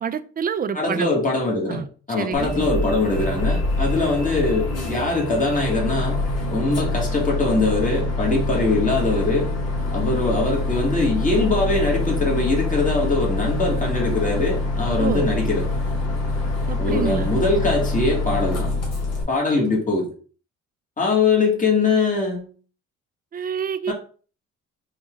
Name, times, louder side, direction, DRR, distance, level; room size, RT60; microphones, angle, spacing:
voice 1, 0.0-1.1 1.7-1.9 2.2-2.5 15.0-15.3 16.7-17.3 23.3-23.9, right 7 dB, 30° right, 0.4 m, -27 dB
voice 2, 0.7-9.5 9.9-15.7 16.8-18.7 19.3-20.1 21.0-22.5 23.9-24.0, left 3 dB, 25° left, 1.8 m, -22 dB
Bus, 2.3-19.2, left 2 dB, 55° left, 1.9 m, -25 dB
4.4 x 2.7 x 3.6 m
cardioid pair, 90°, 30 cm